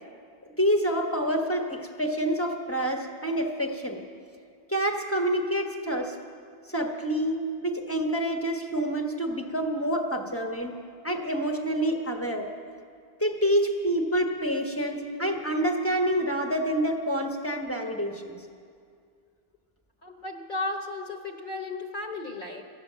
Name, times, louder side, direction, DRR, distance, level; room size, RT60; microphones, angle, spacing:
voice 1, 0.6-4.0 4.7-6.1 6.7-10.8 11.0-12.5 13.2-18.4, right 1 dB, 15° left, 2 dB, 1.0 m, -27 dB
voice 2, 20.0-22.6, left 2 dB, 50° left, 2 dB, 1.1 m, -34 dB
14.0 x 9.7 x 7.3 m, 2.2 s
omnidirectional pair, 1.1 m